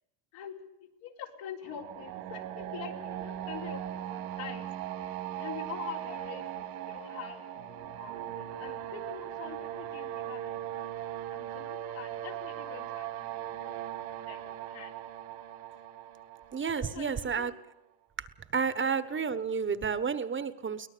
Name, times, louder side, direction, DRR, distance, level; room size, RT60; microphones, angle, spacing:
voice 1, 0.3-10.9 11.2-13.8 14.3-15.0 16.9-17.5 18.8-19.4, left 9 dB, 75° left, 2 dB, 4.2 m, -46 dB
sound 1, 1.6-17.5, right 12 dB, 90° right, 3.5 m, -39 dB
voice 2, 16.5-17.5 18.2-18.3 18.5-20.9, right 6 dB, 25° right, 13 dB, 1.2 m, -31 dB
23.5 x 18.5 x 6.9 m, 0.85 s
cardioid pair, 120°, 46 cm